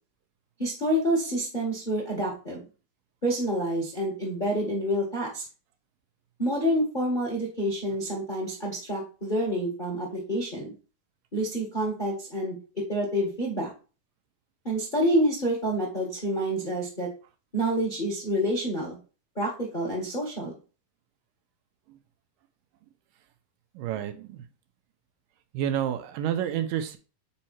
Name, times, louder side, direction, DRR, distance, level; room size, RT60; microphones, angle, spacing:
voice 1, 0.6-2.6 3.2-5.4 6.4-10.7 11.3-12.6 12.9-13.7 14.6-17.1 17.5-19.0 19.3-20.6, equal, 30° left, -2 dB, 0.9 m, -28 dB
voice 2, 23.8-24.4 25.5-27.0, right 10 dB, 85° right, 8 dB, 2.3 m, -29 dB
5.6 x 4.3 x 4.3 m, 0.35 s
omnidirectional pair, 3.9 m